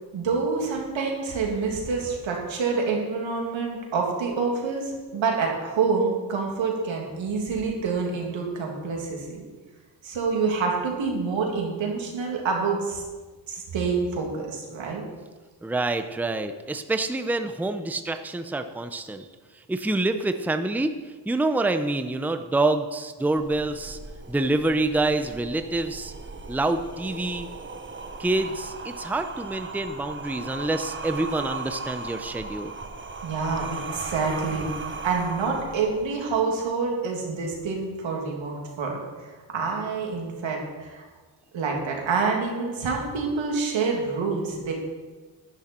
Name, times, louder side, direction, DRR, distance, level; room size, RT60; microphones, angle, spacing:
voice 1, 0.1-9.4 10.0-13.0 13.5-15.0 33.2-34.7 35.0-41.0 41.5-44.7, right 4 dB, 90° right, 0 dB, 2.6 m, -27 dB
voice 2, 15.6-19.3 19.7-20.9 21.3-24.0 24.3-26.1 26.5-27.5 28.2-32.7, right 2 dB, 5° right, 8 dB, 0.6 m, -26 dB
sound 1, 23.4-36.4, right 3 dB, 25° right, 1.1 m, -37 dB
11.5 x 10.5 x 4.4 m, 1.3 s
cardioid pair, 90°, 45 cm